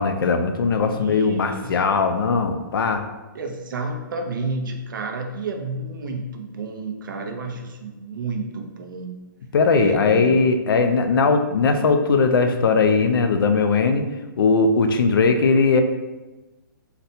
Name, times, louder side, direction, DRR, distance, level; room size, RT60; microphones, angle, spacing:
voice 1, 0.0-3.0 9.5-14.1 14.4-15.8, left 4 dB, 85° left, 7 dB, 0.4 m, -19 dB
voice 2, 0.8-2.0 3.3-9.2 9.7-10.4, right 3 dB, 65° right, 3 dB, 0.5 m, -31 dB
4.0 x 2.1 x 2.7 m, 1.1 s
hypercardioid pair, 175°, 11 cm